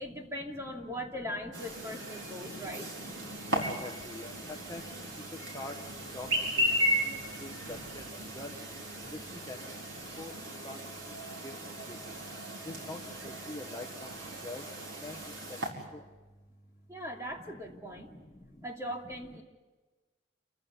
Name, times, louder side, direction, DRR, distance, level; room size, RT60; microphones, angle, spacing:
voice 1, 0.0-2.9 16.9-18.1 18.6-19.4, equal, 15° right, 1 dB, 2.7 m, -40 dB
Chirp tweet, 1.5-15.7, equal, 85° right, 4.8 m, -36 dB
voice 2, 3.5-4.3 4.7-4.8 5.5-5.7 6.1-6.3 6.6-6.7 7.1-8.0 8.4-8.5 9.5-9.6 10.2-10.3 10.6-10.8 11.4-11.5 12.9-13.0 13.2-14.1 14.4-14.6 15.0-15.1, left 2 dB, 20° left, 2 dB, 1.2 m, -42 dB
sound 1, 5.2-10.5, equal, 65° right, 4.2 m, -58 dB
28.0 x 15.0 x 9.7 m, 1.2 s
head